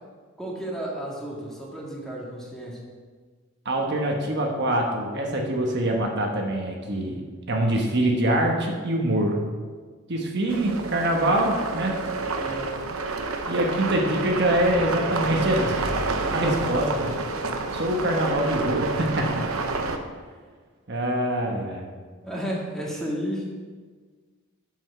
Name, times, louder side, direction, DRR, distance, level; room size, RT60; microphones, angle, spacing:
voice 1, 0.4-2.9 12.4-12.7 22.2-23.5, equal, ahead, -4 dB, 1.8 m, -32 dB
voice 2, 3.6-7.2 7.5-9.4 10.1-11.9 13.5-15.9 16.3-17.1 17.7-19.4 20.9-21.9, right 1 dB, 55° right, 1 dB, 1.2 m, -24 dB
sound 1, 10.5-20.0, right 3 dB, 85° right, 0.8 m, -29 dB
7.8 x 7.2 x 5.7 m, 1.5 s
head